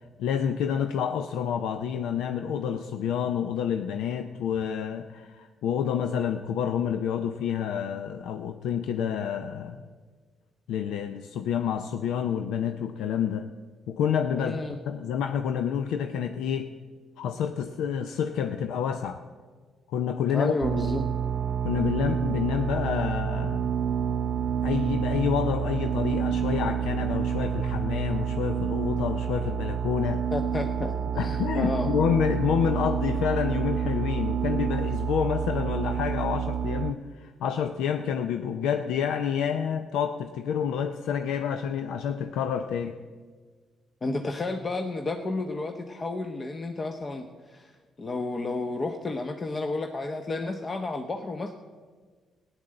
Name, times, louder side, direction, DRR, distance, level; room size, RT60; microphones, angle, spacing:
voice 1, 0.2-9.8 10.7-13.5 13.9-14.6 14.9-16.7 17.2-19.2 19.9-20.5 21.6-23.8 24.6-30.2 31.2-43.0, left 8 dB, 85° left, 8 dB, 0.6 m, -28 dB
voice 2, 14.3-14.7 20.3-21.1 30.3-31.9 44.0-47.7 48.0-51.5, left 2 dB, 35° left, 5 dB, 0.9 m, -31 dB
sound 1, 20.6-36.9, right 8 dB, 60° right, 0.4 m, -28 dB
14.5 x 9.9 x 7.7 m, 1.5 s
cardioid pair, 90°, 0 cm